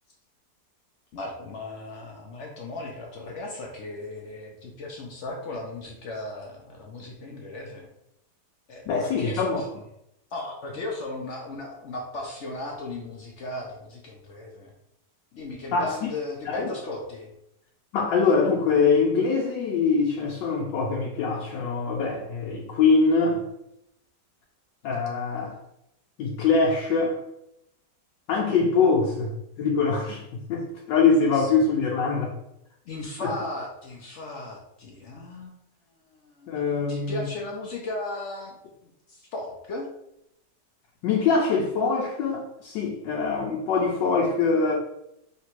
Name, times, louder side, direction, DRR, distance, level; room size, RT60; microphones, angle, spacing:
voice 1, 1.1-7.9 8.7-9.7 10.3-14.7 15.3-17.3 28.8-29.0 31.3-31.5 32.9-35.5 36.1-36.5 36.9-38.5 38.8-39.9, left 2 dB, 65° left, 0 dB, 0.7 m, -36 dB
voice 2, 8.9-9.6 15.7-16.1 16.5-16.7 17.9-23.4 24.8-25.6 26.2-27.2 28.3-29.3 29.6-30.2 30.5-32.4 33.2-33.3 36.5-37.2 41.0-44.8, left 4 dB, 85° left, -2 dB, 1.3 m, -23 dB
3.3 x 2.9 x 4.4 m, 0.82 s
omnidirectional pair, 1.9 m